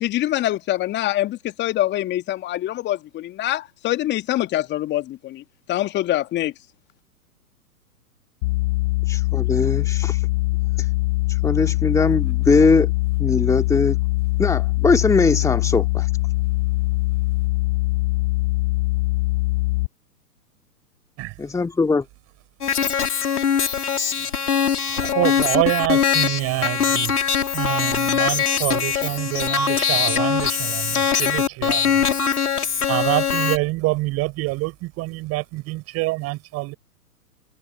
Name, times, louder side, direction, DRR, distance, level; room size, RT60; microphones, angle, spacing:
voice 1, 0.0-6.5, left 14 dB, 25° left, 2.3 m, -24 dB
sound 1, 8.4-19.9, left 20 dB, 45° left, 7.9 m, -22 dB
voice 2, 9.1-10.3 10.8-10.9 11.3-12.9 13.2-14.0 14.4-16.1 21.5-22.0, left 4 dB, 5° left, 2.3 m, -20 dB
sound 2, 22.6-33.6, left 7 dB, 75° left, 3.2 m, -22 dB
voice 3, 24.9-27.2 27.5-32.3 32.9-36.7, right 21 dB, 30° right, 6.8 m, -26 dB
figure-of-eight pair, 115°, 46 cm